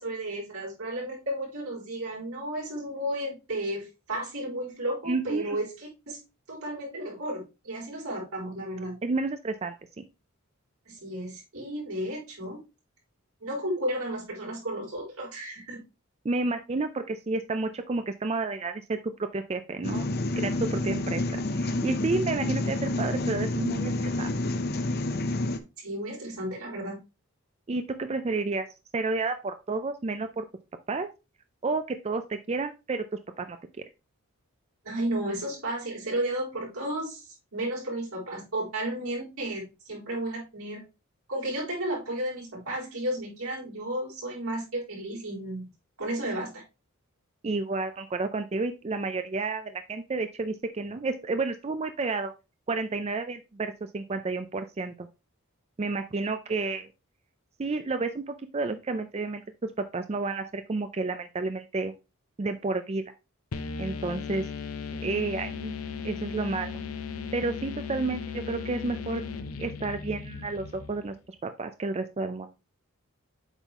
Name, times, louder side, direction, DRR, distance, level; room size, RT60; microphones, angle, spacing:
voice 1, 0.0-6.2 6.5-9.0 10.9-12.6 13.4-15.8 25.8-27.0 34.8-40.8 41.3-45.7 46.0-46.6, right 1 dB, 80° right, -3 dB, 4.2 m, -33 dB
voice 2, 5.1-5.5 9.0-10.0 16.2-20.1 20.4-23.9 24.2-24.3 27.7-28.7 28.9-30.5 30.9-31.1 31.6-33.6 47.4-52.3 52.7-55.1 55.8-56.9 57.6-61.9 62.4-63.0 63.8-64.5 65.0-65.7 66.0-66.8 67.3-69.2 69.6-72.5, right 3 dB, 30° right, 9 dB, 0.4 m, -31 dB
sound 1, 19.8-25.6, left 2 dB, 45° left, 0.7 m, -29 dB
sound 2, 63.5-71.2, left 5 dB, 90° left, 0.8 m, -37 dB
8.1 x 5.5 x 3.0 m, 0.27 s
head